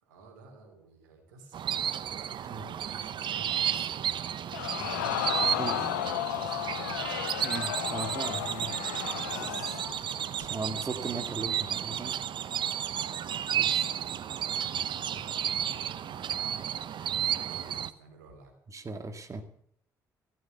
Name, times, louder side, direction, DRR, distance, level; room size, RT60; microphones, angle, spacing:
voice 1, 0.0-1.9 2.4-7.0 14.1-16.6 17.0-18.5 19.3-19.4, right 3 dB, 85° right, 5 dB, 3.3 m, -53 dB
sound 1, 1.5-17.9, right 9 dB, 55° right, 0.9 m, -32 dB
Crowd, 4.5-10.0 10.4-10.5, left 14 dB, 85° left, 0.6 m, -33 dB
voice 2, 5.5-5.9 7.4-8.7 9.4-9.8 10.4-12.2 13.5-13.9 18.7-19.4, right 3 dB, 35° right, 6 dB, 2.1 m, -38 dB
15.5 x 12.5 x 6.8 m, 0.66 s
hypercardioid pair, 50°, 10 cm